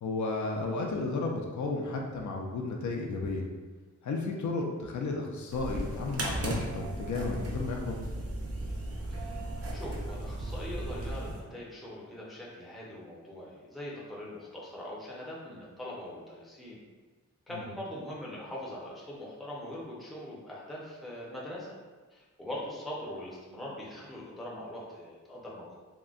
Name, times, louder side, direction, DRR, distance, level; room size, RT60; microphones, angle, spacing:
voice 1, 0.0-3.5 4.0-8.0 17.5-17.6, left 3 dB, 70° left, 0 dB, 0.4 m, -33 dB
sound 1, 5.5-11.4, right 1 dB, 50° right, 0.5 m, -36 dB
voice 2, 9.7-16.8 17.5-21.8 22.1-25.8, left 1 dB, ahead, -6 dB, 0.6 m, -42 dB
3.7 x 2.1 x 2.4 m, 1.3 s
wide cardioid pair, 135°, 30 cm